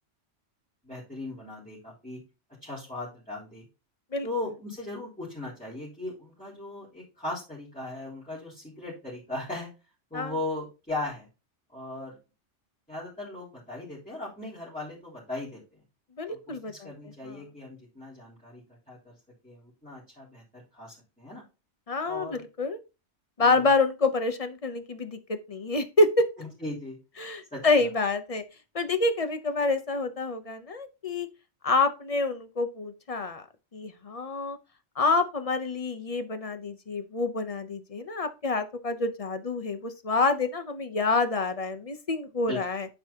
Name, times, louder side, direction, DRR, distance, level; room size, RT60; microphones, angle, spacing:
voice 1, 0.8-2.2 2.6-3.7 4.2-9.7 10.1-11.3 11.7-12.2 12.9-15.8 16.3-19.1 19.4-21.4 22.0-22.4 23.4-23.7 26.4-27.0 27.5-27.7 42.5-42.6, left 2 dB, 5° left, -10 dB, 3.7 m, -38 dB
voice 2, 16.2-16.9 17.3-17.4 21.9-22.8 23.4-26.2 27.2-28.4 28.7-31.3 31.6-33.4 33.7-34.6 35.0-42.9, left 3 dB, 35° left, 8 dB, 0.8 m, -27 dB
11.0 x 4.8 x 2.8 m, 0.29 s
omnidirectional pair, 1.2 m